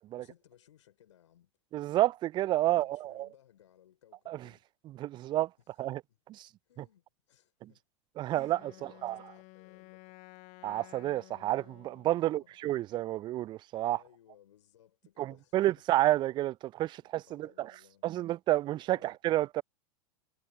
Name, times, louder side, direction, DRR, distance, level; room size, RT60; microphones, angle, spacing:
voice 1, 0.2-1.5 2.6-4.7 5.6-6.2 6.6-7.8 8.2-10.1 12.2-12.6 13.9-15.7 16.9-18.3 18.8-19.1, left 11 dB, 65° left, 5.3 m, -63 dB
voice 2, 1.7-3.3 4.3-4.4 5.0-5.5 5.8-6.0 6.4-6.5 8.2-9.2 10.6-14.0 15.2-17.7 18.0-19.6, right 15 dB, 25° right, 0.4 m, -30 dB
Wind instrument woodwind instrument, 8.3-12.3, left 25 dB, 45° left, 1.5 m, -54 dB
figure-of-eight pair, 90°, 17 cm